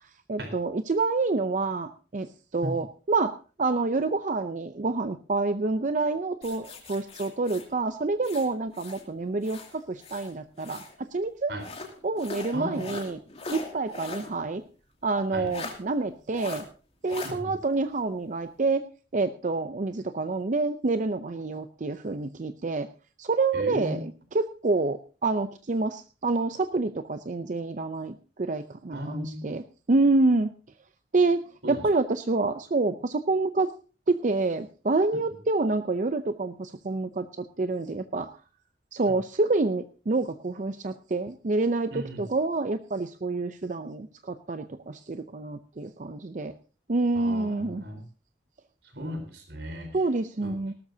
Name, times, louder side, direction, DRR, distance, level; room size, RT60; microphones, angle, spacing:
voice 1, 0.3-3.3 3.6-10.8 11.1-11.5 12.0-13.2 13.5-14.6 15.0-16.6 17.0-18.8 19.1-22.9 23.2-30.5 31.1-31.4 31.7-33.7 34.1-38.3 38.9-46.5 46.9-47.8 49.9-50.7, right 3 dB, 45° right, 10 dB, 0.6 m, -27 dB
sound 1, 6.4-9.1 9.4-11.0 11.6-14.3 14.7-14.8 15.5-15.8 16.3-16.6 17.1-17.3, left 3 dB, 35° left, 2.6 m, -40 dB
voice 2, 12.5-12.9 15.3-15.5 17.2-17.6 23.5-24.0 28.9-29.5 31.6-31.8 41.9-42.2 47.1-48.0 48.9-50.0 50.4-50.5, equal, 70° right, 6 dB, 4.0 m, -36 dB
18.5 x 13.0 x 2.7 m, 0.37 s
head